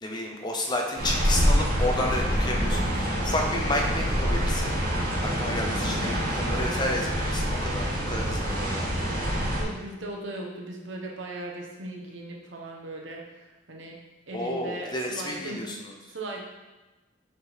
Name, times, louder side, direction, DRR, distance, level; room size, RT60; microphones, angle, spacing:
voice 1, 0.0-4.8 5.2-8.8 14.3-15.9, left 1 dB, 20° left, 1 dB, 0.7 m, -31 dB
sound 1, 1.0-9.6, equal, 45° right, 1.7 m, -26 dB
voice 2, 9.6-14.0 14.3-15.7 16.1-16.4, right 2 dB, 70° right, 0 dB, 1.1 m, -38 dB
6.6 x 3.7 x 4.5 m, 1.1 s
head